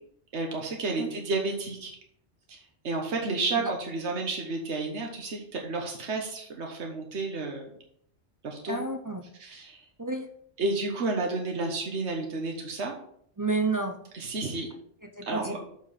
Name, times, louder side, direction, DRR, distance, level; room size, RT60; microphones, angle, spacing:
voice 1, 0.3-1.9 2.5-7.7 8.4-8.8 9.4-9.9 10.6-12.9 14.1-14.7 15.3-15.6, right 3 dB, 85° right, 1 dB, 1.5 m, -31 dB
voice 2, 8.7-9.2 10.0-10.3 13.4-14.0 15.0-15.6, right 3 dB, 20° right, 4 dB, 0.6 m, -30 dB
6.7 x 6.2 x 5.7 m, 0.67 s
omnidirectional pair, 1.1 m